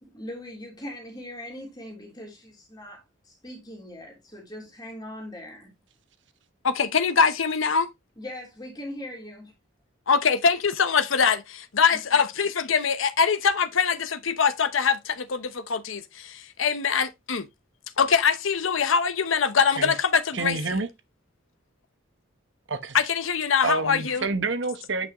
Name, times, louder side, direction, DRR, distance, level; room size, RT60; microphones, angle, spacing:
voice 1, 0.0-5.7 8.2-9.4 11.9-12.0, left 1 dB, 20° left, 3.3 m, -40 dB
voice 2, 6.6-7.9 10.1-17.5 18.0-20.6 22.9-24.2, left 6 dB, 80° left, 0.8 m, -23 dB
voice 3, 20.3-20.9 22.7-23.0 23.6-25.1, right 3 dB, 65° right, 1.1 m, -28 dB
9.0 x 6.2 x 3.0 m
head